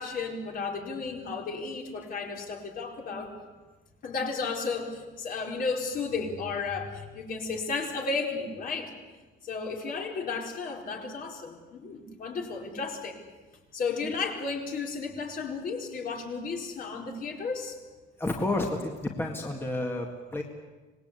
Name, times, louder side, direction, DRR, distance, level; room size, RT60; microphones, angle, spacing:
voice 1, 0.0-3.4 4.0-8.9 9.4-13.2 13.7-17.8, left 4 dB, 45° left, 1 dB, 4.4 m, -33 dB
voice 2, 18.2-20.4, left 2 dB, 10° left, 1 dB, 2.0 m, -30 dB
25.5 x 20.0 x 8.3 m, 1.3 s
cardioid pair, 150°, 19 cm